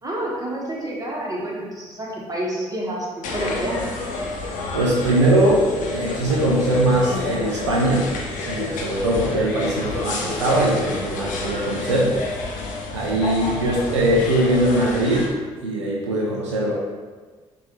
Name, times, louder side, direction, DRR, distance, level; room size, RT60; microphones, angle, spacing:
voice 1, 0.0-3.8, right 1 dB, 25° right, -4 dB, 1.3 m, -28 dB
sound 1, 3.2-15.3, left 3 dB, 60° left, 0.6 m, -29 dB
voice 2, 4.7-5.6 5.9-8.1 8.5-12.1 12.9-15.3 15.6-16.7, right 1 dB, 90° right, -4 dB, 0.4 m, -21 dB
4.5 x 2.6 x 3.0 m, 1.4 s
hypercardioid pair, 45°, 15 cm